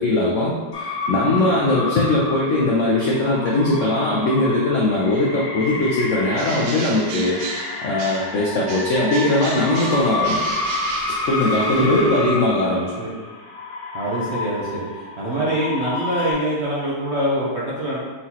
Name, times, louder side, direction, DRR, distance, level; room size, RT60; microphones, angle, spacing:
voice 1, 0.0-7.4 7.8-10.4 11.3-12.9, left 2 dB, 70° left, -4 dB, 0.7 m, -20 dB
sound 1, 0.7-16.3, left 2 dB, 40° left, 1.4 m, -29 dB
Bird, 6.3-8.4 8.7-11.7, right 4 dB, 85° right, 1.4 m, -34 dB
voice 2, 11.7-12.4 13.0-13.1 13.9-18.0, right 1 dB, 55° right, -7 dB, 0.7 m, -25 dB
4.2 x 3.7 x 2.8 m, 1.3 s
omnidirectional pair, 2.0 m